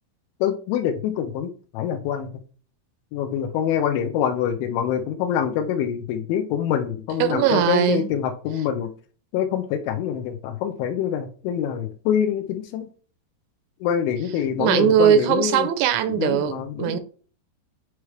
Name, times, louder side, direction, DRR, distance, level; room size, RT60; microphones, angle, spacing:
voice 1, 0.4-2.3 3.1-8.9 9.3-12.9 13.8-15.7 16.1-17.0, left 9 dB, 85° left, 3.2 m, -25 dB
voice 2, 7.2-8.1 14.6-16.5 16.8-17.0, right 10 dB, 80° right, 2.8 m, -20 dB
9.5 x 3.2 x 3.3 m
omnidirectional pair, 5.4 m